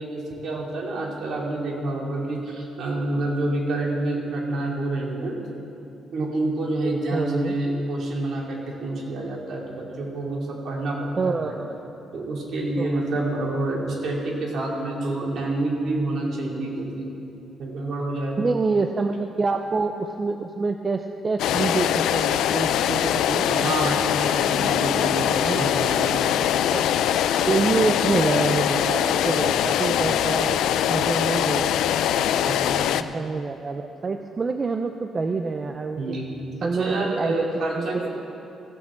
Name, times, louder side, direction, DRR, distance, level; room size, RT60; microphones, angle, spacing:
voice 1, 0.0-5.4 6.1-11.6 12.1-17.2 17.6-18.5 23.5-26.2 32.2-33.0 36.0-38.2, right 2 dB, 65° right, -1 dB, 2.4 m, -28 dB
voice 2, 7.1-7.5 11.2-11.8 12.8-13.0 18.4-23.9 25.4-26.0 26.2-26.3 26.7-26.9 27.5-30.6 30.9-31.7 33.1-36.2 36.6-37.4 37.8-38.1, right 4 dB, 35° right, 6 dB, 0.5 m, -26 dB
sound 1, 21.4-33.0, left 10 dB, 85° left, 0.3 m, -22 dB
sound 2, 22.7-30.6, left 1 dB, 15° left, 2.2 m, -41 dB
15.5 x 5.9 x 7.4 m, 2.8 s
cardioid pair, 90°, 0 cm